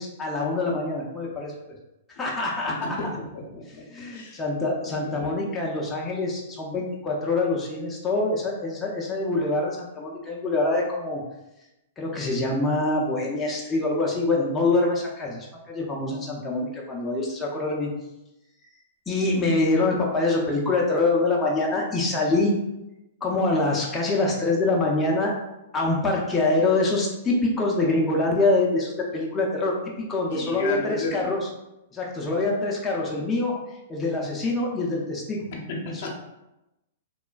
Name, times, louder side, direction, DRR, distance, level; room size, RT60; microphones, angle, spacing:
voice 1, 0.0-1.6 2.1-3.0 3.9-11.2 12.0-17.9 19.1-22.6 23.2-25.3 25.7-29.7 30.1-31.4 31.9-35.4, left 2 dB, 15° left, -3 dB, 0.5 m, -25 dB
voice 2, 2.8-3.8 4.1-4.4 4.8-5.3 30.3-31.4 35.5-36.1, left 2 dB, 65° left, 0 dB, 0.6 m, -33 dB
3.1 x 2.1 x 2.3 m, 0.93 s
hypercardioid pair, 120°, 0 cm